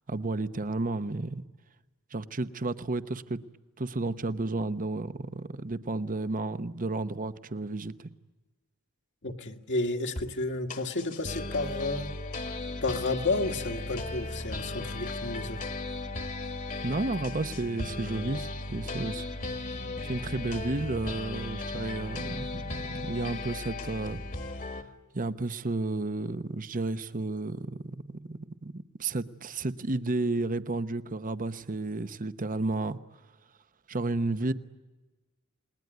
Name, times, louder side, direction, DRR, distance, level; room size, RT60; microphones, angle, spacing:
voice 1, 0.1-1.4 2.1-3.4 3.8-8.1 16.8-24.2 25.1-33.0 33.9-34.5, right 2 dB, 40° right, 0.9 m, -32 dB
voice 2, 9.2-12.1 12.8-15.6, left 2 dB, 55° left, 2.0 m, -31 dB
sound 1, 10.2-10.3 10.7-24.8, left 2 dB, 40° left, 1.8 m, -36 dB
28.5 x 21.0 x 9.4 m
head